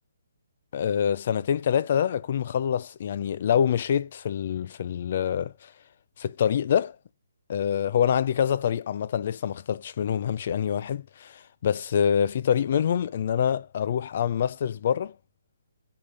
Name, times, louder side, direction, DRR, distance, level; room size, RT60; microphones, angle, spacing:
voice 1, 0.7-5.7 6.2-7.0 7.5-15.1, left 8 dB, 45° left, 0.4 m, -26 dB
8.3 x 5.7 x 3.8 m
hypercardioid pair, 160°, 0 cm